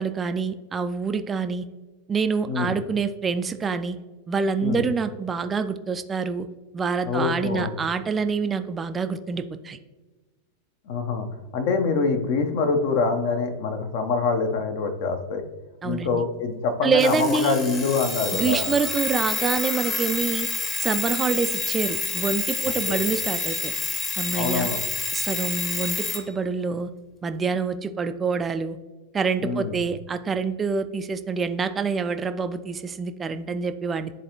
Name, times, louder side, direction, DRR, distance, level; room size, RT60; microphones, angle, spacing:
voice 1, 0.0-1.6 2.1-4.0 4.3-6.5 6.7-9.8 15.8-16.2 16.8-17.5 18.3-20.5 20.8-23.7 24.2-24.7 25.1-26.9 27.2-28.8 29.1-34.1, right 5 dB, 20° right, 9 dB, 0.3 m, -26 dB
voice 2, 7.1-7.7 10.9-11.3 11.5-15.4 15.8-18.7 22.9-23.0 24.3-24.8 29.4-29.7, left 4 dB, 50° left, 6 dB, 0.8 m, -25 dB
Alarm, 17.0-26.2, left 3 dB, 25° left, 1.1 m, -28 dB
10.0 x 4.0 x 2.9 m, 1.2 s
figure-of-eight pair, 90°, 0 cm